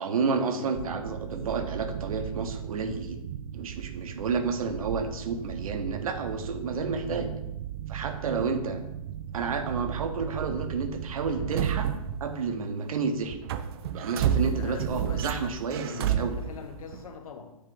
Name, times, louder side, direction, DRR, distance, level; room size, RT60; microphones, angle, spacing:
voice 1, 0.0-3.2 3.5-7.3 7.9-8.8 9.3-11.9 12.2-13.4 13.9-16.4, right 5 dB, 65° right, 6 dB, 1.0 m, -30 dB
sound 1, 0.7-12.9 13.2-17.1, right 9 dB, 40° right, 0.4 m, -34 dB
voice 2, 14.4-15.4 15.7-17.6, left 5 dB, 65° left, 6 dB, 1.0 m, -42 dB
8.5 x 3.2 x 3.9 m, 0.90 s
hypercardioid pair, 130°, 19 cm